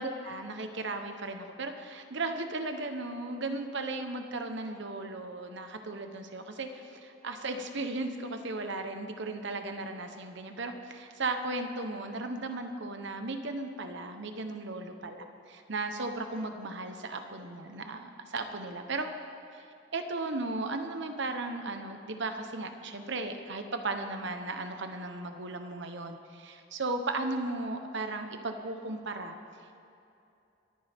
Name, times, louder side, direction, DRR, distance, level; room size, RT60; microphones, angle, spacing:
voice 1, 0.0-19.1 19.9-29.3, right 2 dB, 65° right, 6 dB, 1.1 m, -36 dB
22.5 x 9.8 x 3.6 m, 2.7 s
head